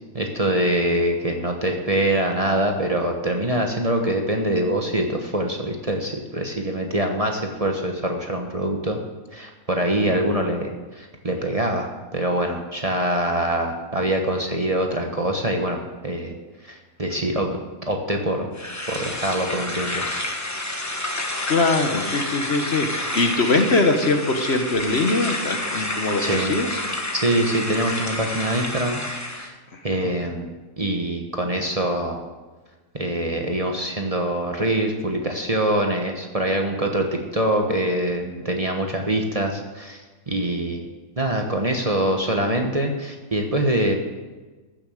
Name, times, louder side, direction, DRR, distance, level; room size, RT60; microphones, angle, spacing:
voice 1, 0.1-9.0 9.3-16.3 16.6-17.6 17.9-18.5 18.9-20.1 26.2-26.6 27.1-29.0 29.3-29.5 29.8-32.2 32.9-40.9 41.2-43.9, right 1 dB, 30° right, 2 dB, 1.1 m, -24 dB
sound 1, 18.5-29.5, left 1 dB, 15° left, 1.1 m, -29 dB
voice 2, 21.0-26.8 28.2-28.3 29.7-30.1, left 3 dB, 50° left, 5 dB, 1.3 m, -23 dB
15.0 x 7.2 x 6.4 m, 1.3 s
omnidirectional pair, 1.5 m